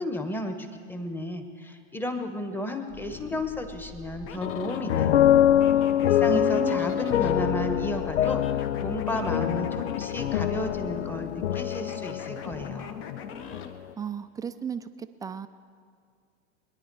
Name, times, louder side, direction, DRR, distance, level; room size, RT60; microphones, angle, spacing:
voice 1, 0.0-5.2 6.0-13.0, left 1 dB, 5° left, 6 dB, 1.3 m, -33 dB
sound 1, 2.9-13.7, left 7 dB, 35° left, 1.3 m, -42 dB
sound 2, 4.4-13.8, left 11 dB, 70° left, 0.6 m, -25 dB
voice 2, 6.3-7.0 7.3-7.5 14.0-14.9 15.2-15.5, right 7 dB, 10° right, 11 dB, 0.5 m, -34 dB
21.5 x 10.5 x 4.8 m, 2.2 s
figure-of-eight pair, 95°, 34 cm